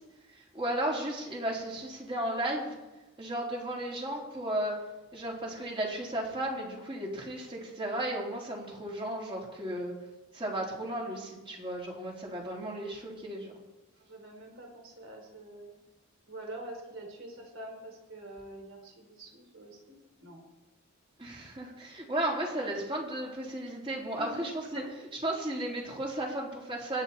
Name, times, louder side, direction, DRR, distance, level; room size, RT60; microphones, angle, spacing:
voice 1, 0.5-2.8 3.2-4.8 5.1-9.9 10.3-13.5 21.2-24.8 25.2-27.0, right 1 dB, 25° right, -2 dB, 3.5 m, -34 dB
voice 2, 14.0-15.7 16.3-19.9 20.2-20.4 24.2-24.5 24.7-24.9, right 1 dB, 60° right, 1 dB, 4.4 m, -45 dB
25.0 x 10.5 x 4.3 m, 1.1 s
head